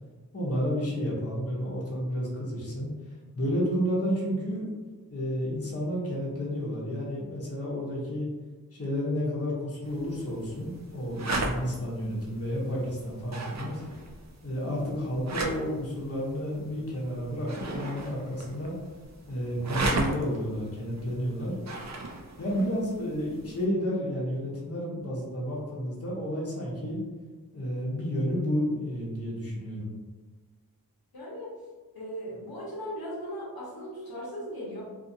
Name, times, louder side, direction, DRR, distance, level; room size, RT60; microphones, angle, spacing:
voice 1, 0.3-2.9 3.3-4.6 5.1-8.3 8.7-13.8 14.4-18.7 19.3-21.5 22.4-27.0 27.5-29.9, equal, 40° left, -5 dB, 0.9 m, -31 dB
sound 1, 9.8-23.6, right 2 dB, 50° right, 0.4 m, -37 dB
voice 2, 31.1-31.5 31.9-34.8, equal, 80° left, -6 dB, 0.9 m, -38 dB
2.5 x 2.5 x 2.6 m, 1.3 s
wide cardioid pair, 55°, 36 cm